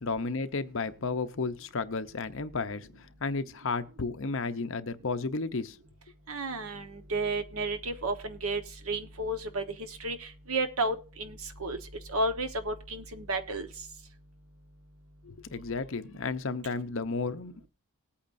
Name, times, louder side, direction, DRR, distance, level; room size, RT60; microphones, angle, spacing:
voice 1, 0.0-5.8 15.2-17.7, left 4 dB, 60° left, 0.7 m, -33 dB
voice 2, 6.3-11.8 12.1-13.7, right 2 dB, 80° right, 1.2 m, -32 dB
19.5 x 8.6 x 2.6 m
head